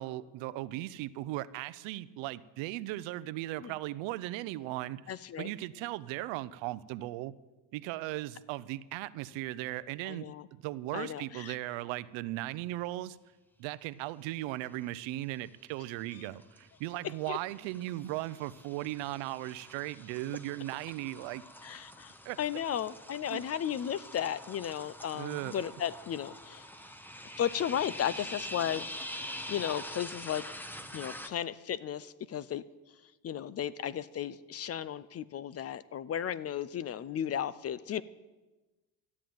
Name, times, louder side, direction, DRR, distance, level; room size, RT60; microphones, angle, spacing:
voice 1, 0.0-5.1 5.4-7.3 7.7-13.2 13.6-21.4 22.2-22.4 23.3-23.4 25.1-25.7, right 16 dB, 80° right, 17 dB, 0.7 m, -37 dB
voice 2, 5.1-5.5 10.1-10.5 10.9-11.6 17.3-17.4 21.6-26.7 27.4-28.9 29.5-30.4 30.9-32.6 33.2-38.0, left 9 dB, 35° left, 18 dB, 0.5 m, -35 dB
sound 1, 15.0-15.5 15.8-31.3, left 1 dB, 5° left, 0.9 m, -45 dB
13.0 x 8.6 x 9.2 m, 1.2 s
cardioid pair, 120°, 45 cm